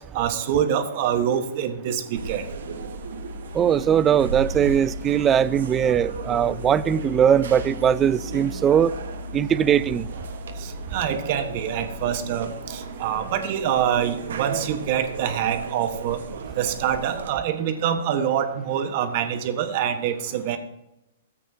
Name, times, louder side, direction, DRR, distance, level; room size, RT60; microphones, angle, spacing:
voice 1, 0.1-2.4 10.9-16.2 16.6-20.6, right 9 dB, 45° right, 1.3 m, -25 dB
sound 1, 2.1-17.3, right 2 dB, 85° right, 1.3 m, -34 dB
voice 2, 3.5-8.9 9.3-10.1, right 9 dB, 20° right, 0.3 m, -20 dB
13.5 x 8.4 x 2.8 m
hypercardioid pair, 145°, 0 cm